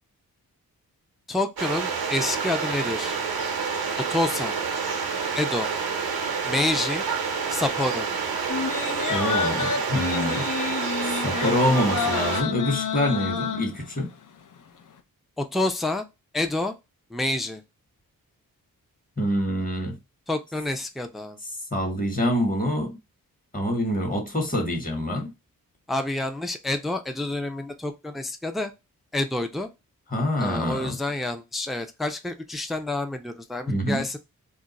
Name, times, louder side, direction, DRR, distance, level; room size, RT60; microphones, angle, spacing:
voice 1, 1.3-3.2 4.0-4.5 5.3-5.7 6.5-7.0 7.5-8.1 15.4-16.0 16.3-16.7 17.1-17.6 20.3-21.4 25.9-28.7 29.1-29.7 30.4-34.2, left 2 dB, ahead, 0.4 m, -28 dB
sound 1, 1.6-12.4, right 5 dB, 90° right, 0.7 m, -28 dB
sound 2, 8.5-14.1 14.5-14.6, left 6 dB, 60° left, 0.6 m, -29 dB
voice 2, 9.1-10.5 11.2-14.1 19.2-20.0 21.7-23.0 23.5-25.3 30.1-31.0 33.7-34.1, equal, 25° left, 1.2 m, -26 dB
2.4 x 2.2 x 4.0 m
cardioid pair, 55°, 35 cm